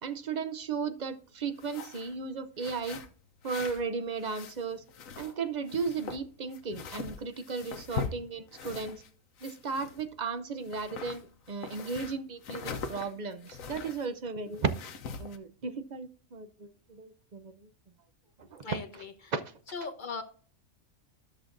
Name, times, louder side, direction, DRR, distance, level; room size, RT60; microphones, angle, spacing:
voice 1, 0.0-3.0 3.4-4.8 5.2-9.0 9.4-14.7 15.2-17.7 18.4-18.6 19.3-19.4, right 5 dB, 45° right, 9 dB, 0.6 m, -35 dB
sound 1, 1.5-2.1 2.6-3.9 4.1-5.4 5.7-9.1 9.4-10.3 10.6-14.1 14.5-15.4, left 5 dB, 70° left, 1.3 m, -41 dB
voice 2, 18.6-19.3 19.7-20.2, left 4 dB, 40° left, 7 dB, 1.0 m, -38 dB
13.0 x 6.4 x 2.5 m, 0.43 s
omnidirectional pair, 1.4 m